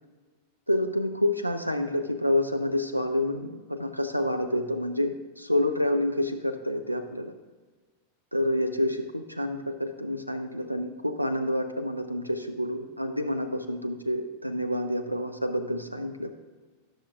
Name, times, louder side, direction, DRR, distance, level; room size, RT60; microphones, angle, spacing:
voice 1, 0.7-7.3 8.3-16.3, left 1 dB, 90° right, 8 dB, 0.3 m, -28 dB
11.5 x 6.3 x 2.4 m, 1.3 s
figure-of-eight pair, 90°, 0 cm